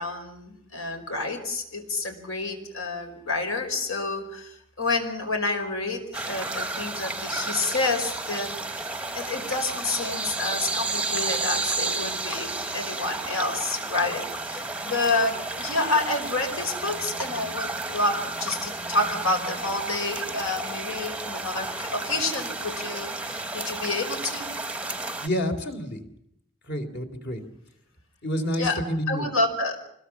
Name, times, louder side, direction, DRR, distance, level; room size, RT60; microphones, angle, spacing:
voice 1, 0.0-24.5 28.6-28.8 29.1-29.8, left 2 dB, 80° left, 6 dB, 4.9 m, -29 dB
sound 1, 6.1-25.3, right 3 dB, 5° right, 0.8 m, -32 dB
voice 2, 25.2-26.0 26.7-27.4 28.2-29.3, equal, 55° left, 7 dB, 3.5 m, -28 dB
25.5 x 21.0 x 7.1 m, 0.76 s
head